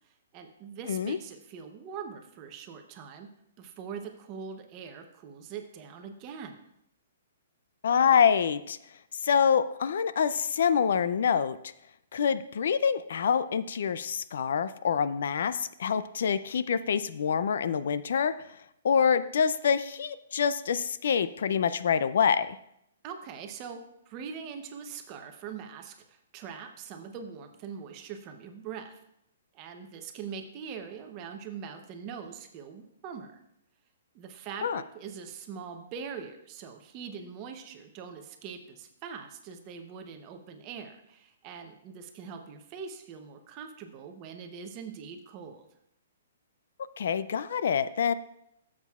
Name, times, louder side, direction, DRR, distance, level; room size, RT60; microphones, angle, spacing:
voice 1, 0.3-3.3 3.6-6.6 23.0-23.8 24.1-28.9 29.5-33.4 34.1-45.6, right 6 dB, 25° right, 5 dB, 0.8 m, -42 dB
voice 2, 0.9-1.2 7.8-8.8 9.2-11.6 12.1-18.3 18.8-22.5 34.6-34.8 47.0-48.1, left 7 dB, 60° left, 14 dB, 0.4 m, -26 dB
15.0 x 7.3 x 2.4 m, 0.78 s
hypercardioid pair, 170°, 0 cm